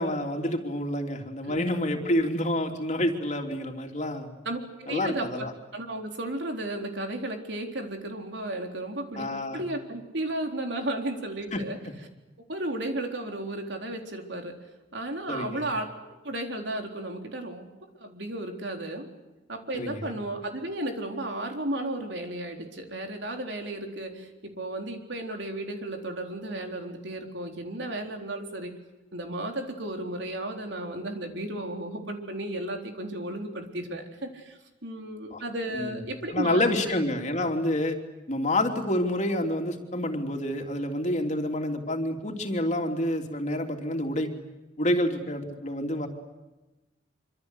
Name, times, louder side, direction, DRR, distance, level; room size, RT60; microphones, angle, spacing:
voice 1, 0.0-4.3 4.9-5.5 9.2-9.6 11.5-11.6 15.3-15.7 19.7-20.1 35.3-35.4 35.7-36.0 36.3-38.0 38.3-44.3 44.8-46.1, left 1 dB, 40° left, 3 dB, 3.2 m, -28 dB
voice 2, 4.4-5.3 5.7-11.8 12.5-14.6 14.9-15.9 16.2-17.7 18.0-19.1 19.5-28.7 29.1-37.0, right 1 dB, 70° right, 3 dB, 4.0 m, -34 dB
26.0 x 25.5 x 8.2 m, 1.1 s
head